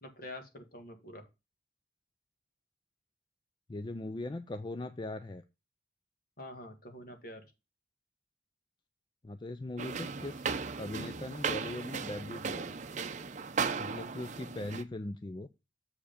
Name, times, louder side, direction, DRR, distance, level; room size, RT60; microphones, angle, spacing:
voice 1, 0.0-1.3 6.4-7.4, left 1 dB, 50° left, 7 dB, 1.6 m, -46 dB
voice 2, 3.7-5.4 9.2-10.4 10.8-12.7 13.8-15.5, left 2 dB, 25° left, 10 dB, 0.4 m, -40 dB
sound 1, 9.8-14.8, right 5 dB, 40° right, 0.6 m, -36 dB
7.3 x 4.8 x 5.0 m, 0.26 s
head